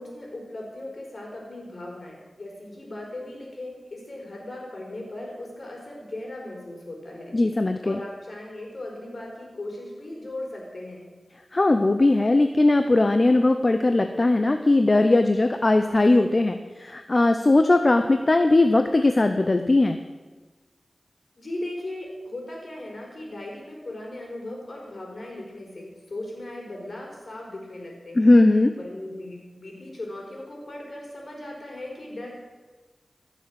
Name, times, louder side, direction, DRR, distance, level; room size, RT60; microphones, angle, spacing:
voice 1, 0.0-7.4 7.8-11.1 21.4-28.3 28.8-32.3, left 1 dB, 60° left, -1 dB, 4.5 m, -38 dB
voice 2, 7.3-8.0 11.5-20.0 28.1-28.8, left 2 dB, 40° left, 7 dB, 0.7 m, -19 dB
15.5 x 7.1 x 7.6 m, 1.3 s
wide cardioid pair, 55°, 0 cm